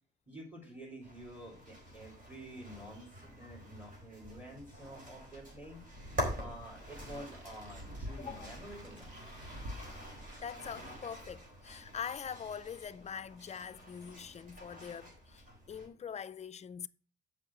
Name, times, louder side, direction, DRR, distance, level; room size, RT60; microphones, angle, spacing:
voice 1, 0.3-5.8 6.4-9.2, right 1 dB, 10° right, 4.2 m, -49 dB
sound 1, 1.0-15.9, equal, 45° right, 4.2 m, -46 dB
sound 2, 5.8-11.2, equal, 80° right, 2.5 m, -48 dB
voice 2, 8.2-8.6 10.4-16.9, left 7 dB, 35° left, 0.4 m, -43 dB
7.5 x 5.6 x 6.3 m
cardioid pair, 90°, 20 cm